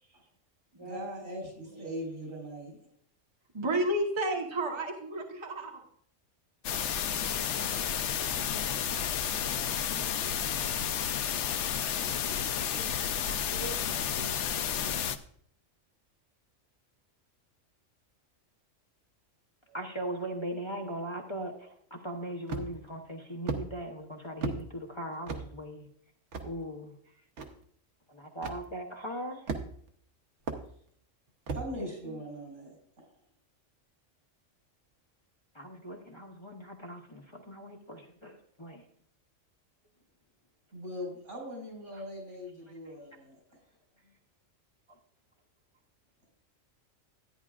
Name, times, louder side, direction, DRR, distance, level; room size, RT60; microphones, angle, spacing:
voice 1, 0.8-2.8 31.5-32.8 40.7-43.4, equal, 85° right, -1 dB, 5.6 m, -40 dB
voice 2, 3.5-5.8 12.7-14.4, right 1 dB, 25° right, 1 dB, 1.3 m, -33 dB
sound 1, 6.6-15.2, left 8 dB, 70° left, 0.9 m, -31 dB
voice 3, 9.3-10.3 19.7-25.9 26.4-26.9 28.1-29.4 31.7-32.2 35.5-38.9 41.9-42.0 42.8-42.9 44.9-45.0, right 1 dB, 25° left, 0 dB, 0.9 m, -40 dB
sound 2, 22.5-22.9 23.5-23.6 24.4-24.6 25.3-25.5 26.3-26.5 27.4-27.5 28.4-28.6 29.5-29.9 30.5-30.6 31.5-31.7, right 4 dB, 65° right, 1.3 m, -34 dB
13.0 x 9.7 x 2.4 m, 0.63 s
omnidirectional pair, 1.3 m